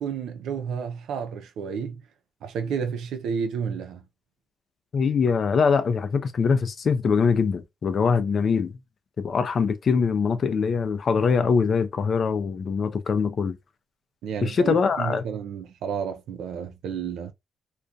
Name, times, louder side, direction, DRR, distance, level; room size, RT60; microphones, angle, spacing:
voice 1, 0.0-2.0 2.4-4.0 14.2-17.3, right 7 dB, 80° right, 0.4 m, -31 dB
voice 2, 4.9-8.7 9.2-13.6 14.4-15.2, left 5 dB, 50° left, 0.4 m, -23 dB
2.3 x 2.2 x 2.6 m
cardioid pair, 90°, 0 cm